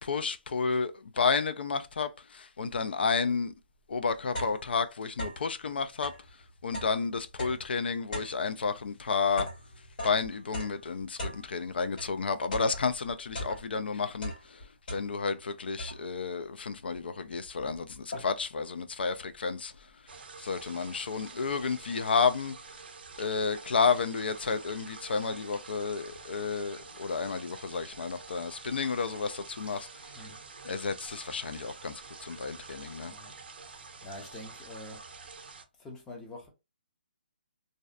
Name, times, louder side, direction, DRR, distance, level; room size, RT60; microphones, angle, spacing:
voice 1, 0.0-3.5 3.9-6.1 6.6-9.5 10.0-19.9 20.4-22.6 23.2-30.3 30.6-33.1, left 5 dB, 75° left, 0.3 m, -31 dB
sound 1, 3.9-5.6 5.9-12.2 12.5-13.9 14.2-15.4 15.8-16.3 16.9-17.0 17.3-18.6, left 1 dB, 55° left, 1.4 m, -40 dB
sound 2, 20.1-35.6, right 4 dB, 70° right, 0.5 m, -48 dB
voice 2, 33.7-35.0 35.8-36.5, left 2 dB, 10° left, 0.4 m, -46 dB
2.5 x 2.1 x 2.3 m
hypercardioid pair, 165°, 6 cm